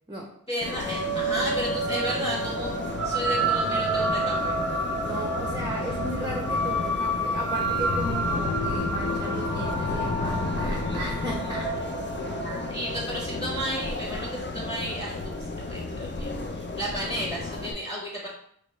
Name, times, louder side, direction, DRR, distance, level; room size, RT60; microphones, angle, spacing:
voice 1, 0.5-2.7 3.0-4.5 12.4-18.3, equal, 15° left, -4 dB, 1.0 m, -33 dB
sound 1, 0.6-15.3, right 2 dB, 55° left, 1.0 m, -30 dB
sound 2, 0.6-17.7, left 3 dB, 35° left, 0.5 m, -33 dB
voice 2, 5.0-11.7, right 1 dB, 10° right, -1 dB, 0.6 m, -35 dB
5.5 x 2.0 x 3.1 m, 0.68 s
wide cardioid pair, 80°, 32 cm